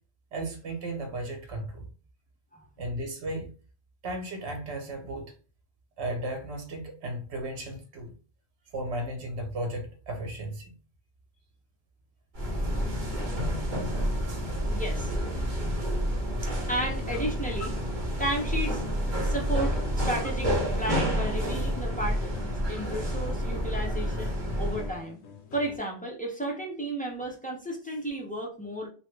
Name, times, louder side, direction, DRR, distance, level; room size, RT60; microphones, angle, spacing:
voice 1, 0.3-1.9 2.8-3.5 4.0-5.3 6.0-8.1 8.7-10.7, right 1 dB, 80° right, 3 dB, 1.1 m, -35 dB
sound 1, 12.3-25.0, equal, 50° right, 0.9 m, -29 dB
voice 2, 14.7-15.1 16.7-17.7 18.2-18.8 19.2-25.2 25.5-28.9, right 1 dB, 10° left, -2 dB, 0.4 m, -33 dB
sound 2, 16.8-25.8, left 4 dB, 85° left, 0.9 m, -46 dB
2.9 x 2.2 x 3.1 m, 0.37 s
omnidirectional pair, 1.1 m